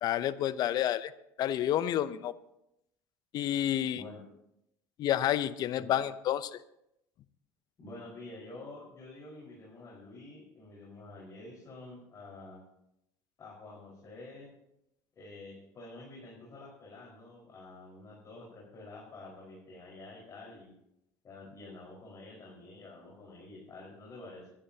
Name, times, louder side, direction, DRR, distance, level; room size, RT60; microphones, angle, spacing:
voice 1, 0.0-1.1 1.4-2.3 3.3-4.0 5.0-6.6, left 11 dB, 55° left, 15 dB, 0.7 m, -29 dB
voice 2, 7.8-12.6 13.4-14.5 15.1-20.7 21.2-24.5, left 2 dB, 40° left, -4 dB, 4.9 m, -48 dB
23.5 x 11.0 x 2.9 m, 0.81 s
supercardioid pair, 85°, 8 cm